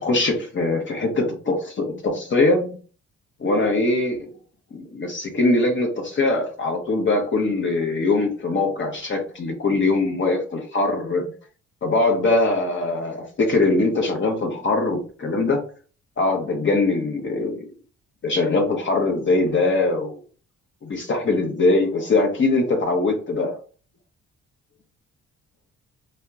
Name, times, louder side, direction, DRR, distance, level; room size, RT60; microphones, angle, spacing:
voice 1, 0.0-2.8 3.4-4.3 4.7-11.3 11.8-15.6 16.2-17.7 18.2-20.2 20.8-23.6, left 2 dB, 40° left, 0.8 m, -22 dB
2.7 x 2.2 x 3.4 m
cardioid pair, 90°, 30 cm